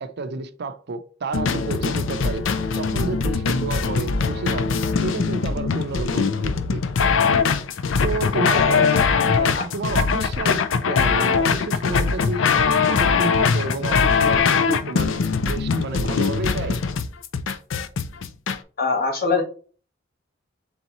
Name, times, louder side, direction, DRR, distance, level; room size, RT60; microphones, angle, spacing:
voice 1, 0.0-2.4 2.8-4.7 5.0-6.8 8.0-15.1 15.4-16.8, right 3 dB, 60° right, 0.5 m, -30 dB
sound 1, 1.3-18.6, left 5 dB, 75° left, 0.4 m, -21 dB
voice 2, 8.5-9.0 9.5-9.7 18.8-19.4, left 4 dB, 55° left, 1.3 m, -23 dB
4.0 x 3.6 x 2.9 m
head